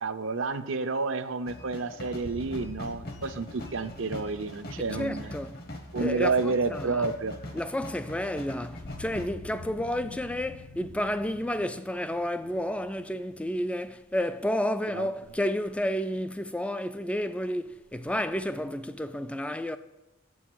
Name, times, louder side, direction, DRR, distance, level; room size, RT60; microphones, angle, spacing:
voice 1, 0.0-5.3 5.9-7.4 14.9-15.1, right 3 dB, 65° right, 0.6 m, -30 dB
sound 1, 1.5-9.3, left 1 dB, 50° left, 1.2 m, -42 dB
sound 2, 2.2-7.2 8.8-14.5, left 3 dB, 65° left, 0.6 m, -47 dB
voice 2, 4.8-5.6 6.0-7.1 7.5-19.8, left 1 dB, 5° left, 0.3 m, -31 dB
8.0 x 6.3 x 7.6 m
head